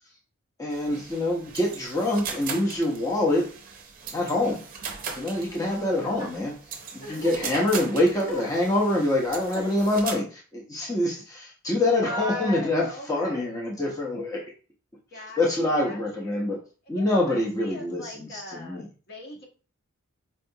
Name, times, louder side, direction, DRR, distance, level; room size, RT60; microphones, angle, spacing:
voice 1, 0.6-3.5 4.1-4.6 5.1-6.5 6.9-14.5 15.1-16.6 16.9-18.9, left 1 dB, 15° left, -3 dB, 0.6 m, -25 dB
sound 1, 0.7-10.1, right 5 dB, 40° right, 0.6 m, -39 dB
voice 2, 5.5-6.3 7.0-7.6 8.2-8.5 8.9-9.0 9.5-9.6 12.0-13.6 15.1-16.5 16.9-19.5, left 1 dB, 45° left, 0 dB, 0.8 m, -38 dB
4.5 x 2.3 x 2.7 m, 0.37 s
head